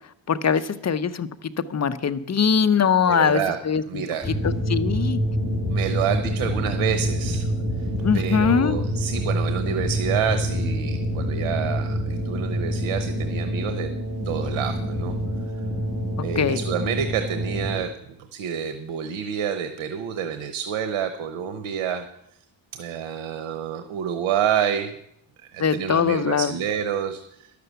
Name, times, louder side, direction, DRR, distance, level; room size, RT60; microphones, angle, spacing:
voice 1, 0.3-1.3 1.7-3.4 3.7-4.0 4.4-5.2 8.0-8.8 16.4-16.6 25.6-26.5, left 7 dB, 35° left, 12 dB, 0.7 m, -21 dB
voice 2, 3.1-3.6 3.9-4.3 5.7-7.5 8.1-13.9 14.2-15.1 16.2-17.9 18.2-22.0 22.7-24.9 25.5-27.5, right 8 dB, 85° right, 9 dB, 1.0 m, -28 dB
sound 1, 4.2-17.8, equal, ahead, 4.7 m, -26 dB
11.5 x 6.9 x 8.0 m, 0.77 s
cardioid pair, 95°, 48 cm